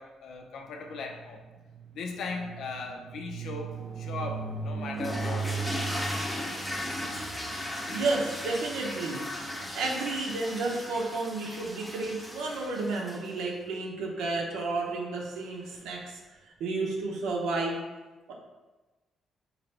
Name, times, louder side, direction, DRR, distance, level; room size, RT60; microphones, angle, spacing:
voice 1, 0.0-1.4 1.9-5.5, left 4 dB, 70° left, 2 dB, 0.5 m, -38 dB
sound 1, 0.8-10.8, right 5 dB, 60° right, 0.3 m, -39 dB
sound 2, 5.0-13.4, left 1 dB, 15° left, 0.6 m, -36 dB
voice 2, 7.9-9.2 9.6-16.2 16.6-17.8 18.3-18.4, right 3 dB, 90° right, -1 dB, 0.7 m, -31 dB
4.0 x 2.5 x 3.3 m, 1.2 s
cardioid pair, 90°, 0 cm